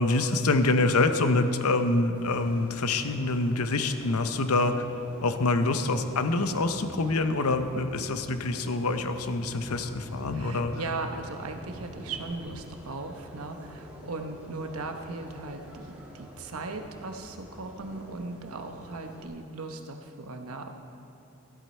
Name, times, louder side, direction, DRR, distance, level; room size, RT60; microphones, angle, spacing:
voice 1, 0.0-4.9 5.2-10.7, left 2 dB, 85° left, 9 dB, 0.7 m, -26 dB
sound 1, 2.1-19.3, equal, 10° right, 1.8 m, -47 dB
voice 2, 10.3-20.7, right 3 dB, 80° right, 5 dB, 1.0 m, -38 dB
13.5 x 11.5 x 4.4 m, 2.7 s
head